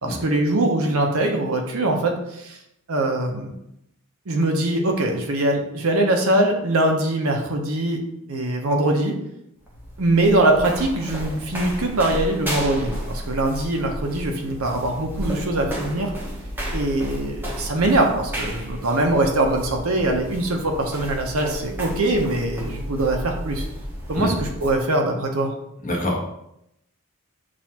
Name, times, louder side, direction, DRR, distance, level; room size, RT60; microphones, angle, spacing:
voice 1, 0.0-2.6 2.9-3.5 4.3-8.0 8.3-9.1 10.0-16.1 16.7-23.7 24.1-25.5, right 2 dB, 75° right, 2 dB, 0.7 m, -22 dB
sound 1, 9.6-24.8, equal, 10° right, 0.7 m, -32 dB
voice 2, 25.8-26.2, left 1 dB, 35° left, -2 dB, 1.0 m, -25 dB
6.2 x 2.5 x 2.9 m, 0.80 s
head